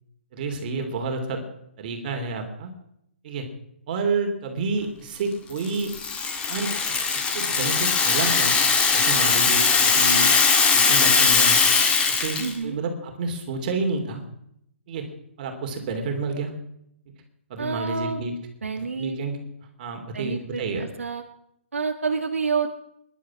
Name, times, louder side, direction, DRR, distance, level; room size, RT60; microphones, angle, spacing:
voice 1, 0.3-1.4 1.8-2.7 3.2-3.5 3.9-5.9 6.5-7.0 7.3-8.5 8.9-10.2 10.7-11.6 12.1-14.2 14.9-15.0 15.4-16.5 17.5-18.3 18.7-19.4 19.8-20.9, right 3 dB, 45° right, 4 dB, 3.0 m, -29 dB
Rattle (instrument), 5.6-12.5, left 5 dB, 15° left, 2.2 m, -20 dB
voice 2, 12.4-12.8 17.6-18.3 18.6-19.1 20.1-21.2 21.7-22.7, right 5 dB, 85° right, 4 dB, 1.4 m, -28 dB
20.0 x 11.0 x 6.3 m, 0.78 s
hypercardioid pair, 140°, 7 cm